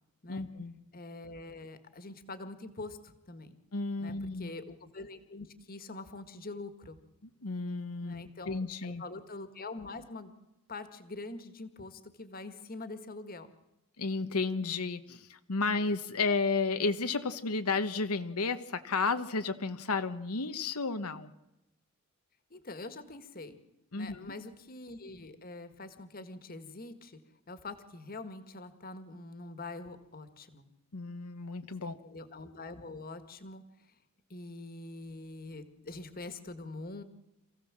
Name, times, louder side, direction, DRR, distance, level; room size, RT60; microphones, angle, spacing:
voice 1, 0.3-0.8 3.7-4.5 7.4-9.0 14.0-21.3 23.9-24.3 30.9-32.0, left 4 dB, 90° left, 8 dB, 1.2 m, -32 dB
voice 2, 0.9-3.6 4.0-7.0 8.0-10.3 10.7-13.5 22.5-23.6 24.0-27.2 27.5-30.7 31.8-34.0 34.3-37.0, left 2 dB, 40° left, 10 dB, 1.8 m, -44 dB
27.5 x 16.0 x 7.5 m, 0.92 s
head